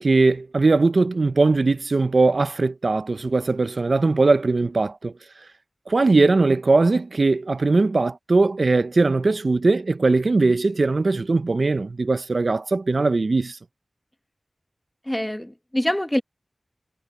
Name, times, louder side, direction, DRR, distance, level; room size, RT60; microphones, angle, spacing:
voice 1, 0.0-5.1 5.9-13.6, right 3 dB, 65° right, 0.5 m, -20 dB
voice 2, 15.1-16.2, left 1 dB, 10° left, 1.1 m, -25 dB
wide cardioid pair, 65°, 0 cm